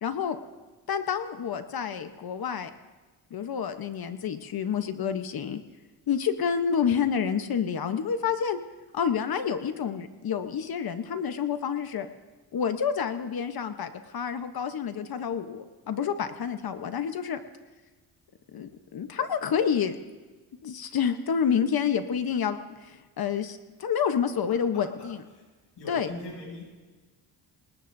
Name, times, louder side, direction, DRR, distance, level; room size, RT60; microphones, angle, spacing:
voice 1, 0.0-0.4 0.9-2.7 3.3-5.6 6.1-8.6 8.9-12.1 12.5-17.4 18.5-20.0 20.6-25.2 25.9-26.1, left 7 dB, 55° left, 8 dB, 1.0 m, -28 dB
voice 2, 24.5-24.8 25.8-26.6, left 2 dB, 75° left, -3 dB, 7.3 m, -41 dB
27.0 x 19.0 x 2.7 m, 1.3 s
cardioid pair, 110°, 42 cm